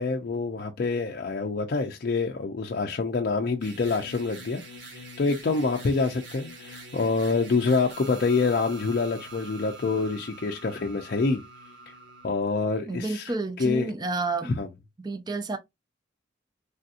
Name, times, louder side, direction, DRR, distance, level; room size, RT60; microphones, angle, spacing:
voice 1, 0.0-11.4 12.2-13.3 13.6-13.9 14.6-14.7, left 4 dB, 50° left, 0.4 m, -26 dB
sound 1, 3.6-12.3, right 1 dB, 70° right, 1.3 m, -44 dB
voice 2, 12.9-14.6 15.0-15.6, right 3 dB, 20° right, 0.4 m, -30 dB
3.4 x 2.7 x 2.4 m
head